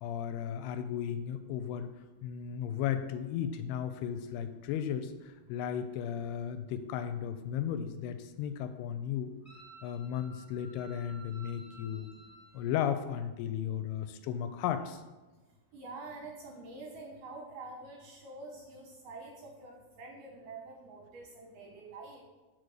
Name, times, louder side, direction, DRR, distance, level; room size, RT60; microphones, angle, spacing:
voice 1, 0.0-1.9 2.2-9.3 9.8-12.1 12.5-15.0, left 9 dB, 85° left, 10 dB, 2.4 m, -35 dB
Wind instrument woodwind instrument, 9.4-12.7, right 2 dB, 20° left, 1.4 m, -55 dB
voice 2, 15.7-22.2, right 3 dB, 70° right, 0 dB, 2.1 m, -47 dB
6.4 x 5.2 x 6.4 m, 1.2 s
omnidirectional pair, 4.7 m